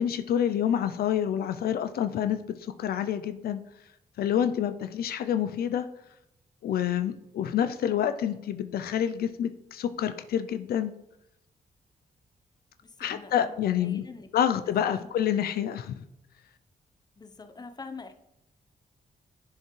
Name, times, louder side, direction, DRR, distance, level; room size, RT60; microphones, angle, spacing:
voice 1, 0.0-3.6 4.2-5.9 6.6-10.9 13.0-14.1 14.3-16.0, left 9 dB, 80° left, 10 dB, 0.4 m, -28 dB
voice 2, 12.8-14.3 14.8-15.1 17.2-18.1, left 4 dB, 25° left, 8 dB, 0.7 m, -45 dB
10.5 x 4.5 x 3.1 m, 0.84 s
cardioid pair, 80°, 16 cm